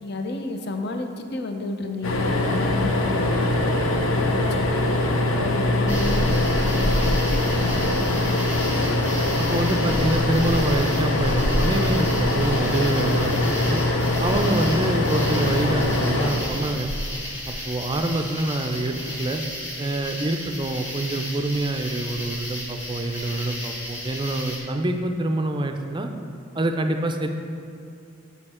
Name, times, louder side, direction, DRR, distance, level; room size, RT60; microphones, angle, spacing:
voice 1, 0.0-3.4 3.8-4.9 5.4-8.3, left 2 dB, 50° left, 5 dB, 0.6 m, -31 dB
sound 1, 2.0-17.3 19.0-19.2 19.4-19.5, left 2 dB, 85° left, 0.8 m, -23 dB
sound 2, 5.9-24.6, equal, 35° left, 1.9 m, -31 dB
voice 2, 9.4-13.8 14.2-16.9 17.5-19.4 19.8-26.1 26.5-27.3, right 2 dB, 20° right, 5 dB, 0.4 m, -26 dB
7.0 x 6.7 x 4.3 m, 2.5 s
head